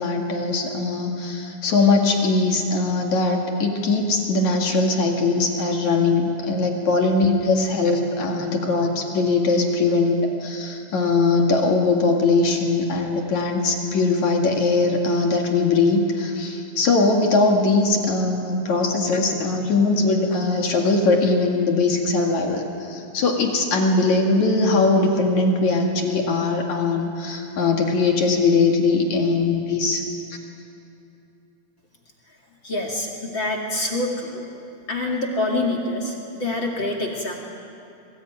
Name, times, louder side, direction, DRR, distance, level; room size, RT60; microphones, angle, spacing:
voice 1, 0.0-30.0, left 3 dB, 50° left, 1 dB, 3.1 m, -21 dB
voice 2, 32.6-34.4 34.9-37.4, left 2 dB, 35° left, 2 dB, 2.4 m, -26 dB
26.0 x 20.0 x 9.3 m, 2.8 s
omnidirectional pair, 4.6 m